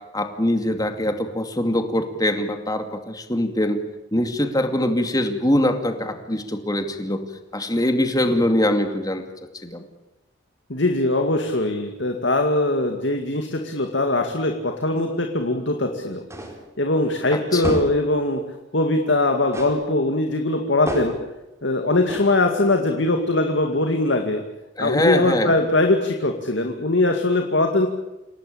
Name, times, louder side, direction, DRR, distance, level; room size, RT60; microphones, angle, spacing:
voice 1, 0.1-3.8 4.1-7.2 7.5-9.2 9.6-9.8 17.5-17.6 24.8-25.5, left 1 dB, 20° left, 6 dB, 2.4 m, -22 dB
voice 2, 10.7-16.2 16.8-18.4 18.7-21.1 21.6-24.4 24.8-27.9, left 2 dB, 70° left, 4 dB, 2.3 m, -21 dB
sound 1, 16.3-16.7 17.6-18.1 19.5-19.9 20.9-21.3 22.1-22.4, right 1 dB, 15° right, 4.4 m, -30 dB
28.5 x 18.0 x 8.7 m, 1.0 s
head